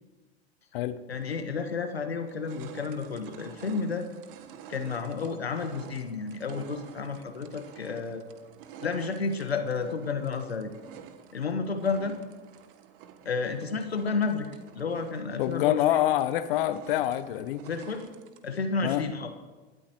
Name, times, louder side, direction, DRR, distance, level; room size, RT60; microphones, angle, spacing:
voice 1, 1.1-4.1 4.7-8.2 8.8-10.7 11.3-12.2 13.2-16.0 17.6-18.1 18.4-19.3, left 4 dB, 85° left, 7 dB, 1.5 m, -31 dB
sound 1, 1.2-1.3 1.8-18.7, right 9 dB, 60° right, 1.3 m, -49 dB
voice 2, 15.4-17.6 18.8-19.0, left 13 dB, 60° left, 12 dB, 0.9 m, -26 dB
28.0 x 12.5 x 3.1 m, 1.3 s
figure-of-eight pair, 80°, 31 cm